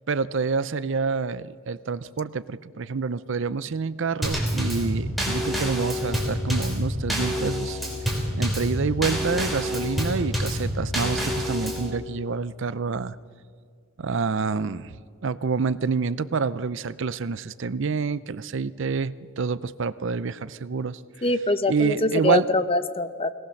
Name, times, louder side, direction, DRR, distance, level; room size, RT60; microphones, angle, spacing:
voice 1, 0.1-7.8 8.4-13.2 14.0-14.9 15.2-21.0 21.7-22.5, right 4 dB, 60° right, 16 dB, 0.5 m, -27 dB
Drum kit / Snare drum / Bass drum, 4.2-11.9, equal, ahead, 4.0 m, -27 dB
voice 2, 21.2-23.3, left 2 dB, 25° left, 11 dB, 0.8 m, -24 dB
22.0 x 18.0 x 6.5 m, 2.1 s
head